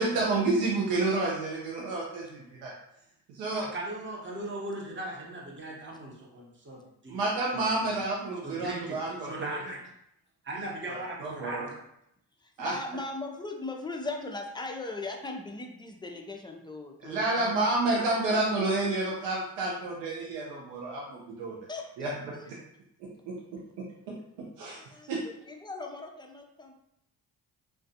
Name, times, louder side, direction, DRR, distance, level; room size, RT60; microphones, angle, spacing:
voice 1, 0.0-2.7 3.3-3.7 7.1-9.5 10.9-11.7 12.6-12.7 17.0-21.6 22.0-22.1 22.5-22.6 23.3-23.4 24.1-24.2 24.6-24.8 25.1-25.2, right 2 dB, 85° right, -4 dB, 0.6 m, -29 dB
voice 2, 3.5-7.2 7.5-8.1 8.4-9.8 10.4-11.7, right 1 dB, 25° right, -2 dB, 0.8 m, -39 dB
voice 3, 12.4-17.6 21.7-22.5 24.7-26.7, left 2 dB, 10° left, 2 dB, 0.4 m, -39 dB
2.3 x 2.2 x 2.6 m, 0.79 s
supercardioid pair, 45°, 43 cm